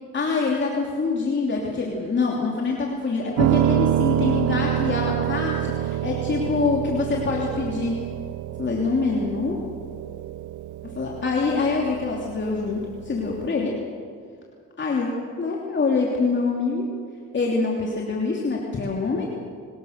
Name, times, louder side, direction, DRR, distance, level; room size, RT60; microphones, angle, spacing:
voice 1, 0.1-7.9 8.6-9.6 10.8-13.8 14.8-15.1 15.4-16.9 17.3-19.3, left 4 dB, 40° left, -2 dB, 3.0 m, -25 dB
Piano, 3.4-13.5, right 12 dB, 75° right, 0.8 m, -27 dB
25.5 x 19.0 x 6.7 m, 2.2 s
cardioid pair, 90°, 30 cm